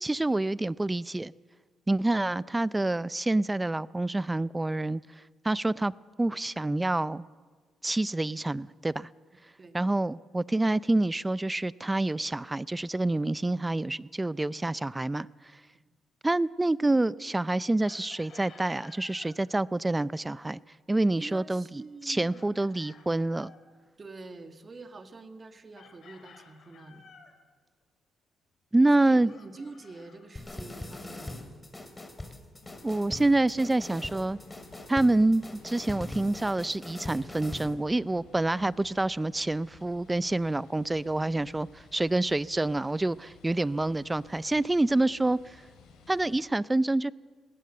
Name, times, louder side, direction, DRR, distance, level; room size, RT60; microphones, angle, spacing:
voice 1, 0.0-1.3 1.9-5.0 5.4-5.9 6.2-7.2 7.8-9.1 9.7-15.3 16.2-20.6 20.9-21.6 22.0-23.5 28.7-29.3 32.8-34.4 34.9-45.6 46.1-47.1, right 2 dB, 15° right, 0.5 m, -27 dB
Chicken rooster, 17.8-19.3 22.3-23.6 25.7-27.4 29.3-30.8, left 6 dB, 60° left, 3.3 m, -55 dB
voice 2, 21.2-22.4 24.0-27.1 29.0-31.6, right 3 dB, 35° right, 1.9 m, -46 dB
sound 1, 30.4-37.7, left 2 dB, 15° left, 2.8 m, -42 dB
sound 2, 32.6-46.3, left 5 dB, 90° left, 4.2 m, -56 dB
20.0 x 18.0 x 7.7 m
cardioid pair, 90°, 0 cm